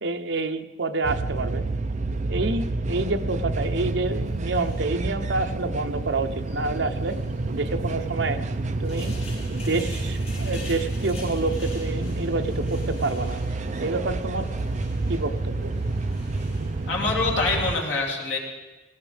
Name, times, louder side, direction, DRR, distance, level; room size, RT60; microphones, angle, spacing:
voice 1, 0.0-1.6 2.3-7.2 7.5-8.4 8.8-9.1 9.5-13.4 13.8-14.5 15.1-15.7, right 3 dB, 75° right, 8 dB, 0.9 m, -28 dB
sound 1, 1.0-17.8, right 2 dB, 40° right, 0.5 m, -29 dB
sound 2, 3.5-17.5, left 2 dB, 40° left, 6.1 m, -46 dB
voice 2, 16.9-18.4, left 3 dB, 75° left, -3 dB, 3.2 m, -25 dB
18.5 x 17.0 x 3.5 m, 1.2 s
head